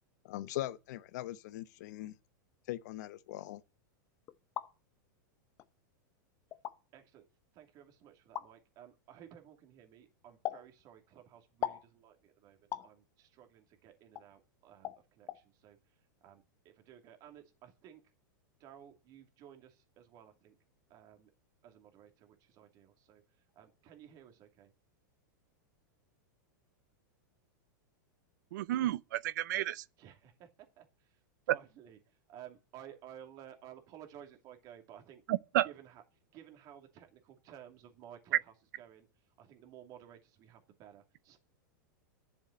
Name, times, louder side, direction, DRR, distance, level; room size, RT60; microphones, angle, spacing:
voice 1, 0.2-2.1 2.7-3.6, left 15 dB, 60° left, 0.9 m, -40 dB
sound 1, 4.3-4.7 5.6-5.7 6.5-6.8 8.3-8.5 10.4-10.7 11.6-11.9 12.7-12.9 14.2-14.3 14.8-15.0 15.3-15.4, left 12 dB, 25° left, 0.8 m, -38 dB
voice 2, 6.9-7.3 7.5-18.0 18.6-20.6 20.9-21.3 21.6-24.7 30.0-35.2 35.6-41.4, right 10 dB, 35° right, 2.6 m, -55 dB
voice 3, 28.5-29.8 35.3-35.7, right 14 dB, 65° right, 0.6 m, -31 dB
11.0 x 7.2 x 8.7 m
supercardioid pair, 150°, 11 cm